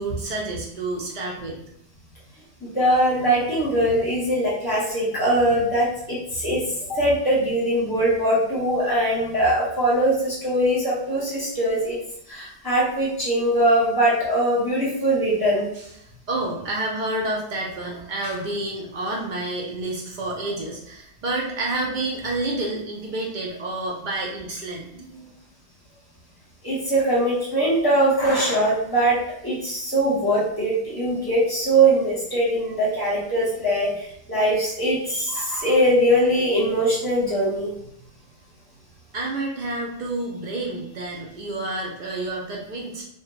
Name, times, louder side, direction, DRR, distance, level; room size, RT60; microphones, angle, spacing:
voice 1, 0.0-1.6 15.7-24.9 39.1-43.0, right 2 dB, 55° right, -2 dB, 0.6 m, -29 dB
voice 2, 2.6-12.0 12.3-15.7 25.2-25.3 26.6-37.7, right 1 dB, 20° left, -7 dB, 0.9 m, -21 dB
2.2 x 2.2 x 3.2 m, 0.72 s
omnidirectional pair, 1.1 m